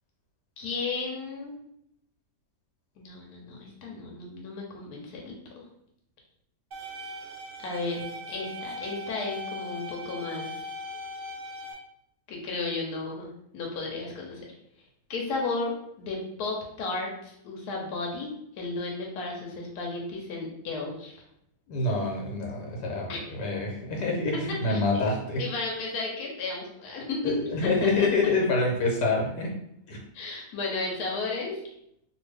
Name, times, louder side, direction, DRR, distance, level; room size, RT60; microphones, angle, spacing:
voice 1, 0.6-1.6 3.0-5.7 7.6-10.6 12.3-14.4 15.1-21.2 23.1-23.3 24.7-25.0 25.4-27.3 27.6-27.7 30.1-31.6, left 3 dB, 70° left, -1 dB, 1.2 m, -34 dB
sound 1, 6.7-11.7, left 1 dB, 70° right, 0.4 m, -39 dB
voice 2, 21.7-25.4 27.2-29.5 29.9-30.0, left 3 dB, 90° left, -1 dB, 1.5 m, -26 dB
2.7 x 2.6 x 3.3 m, 0.74 s
omnidirectional pair, 1.8 m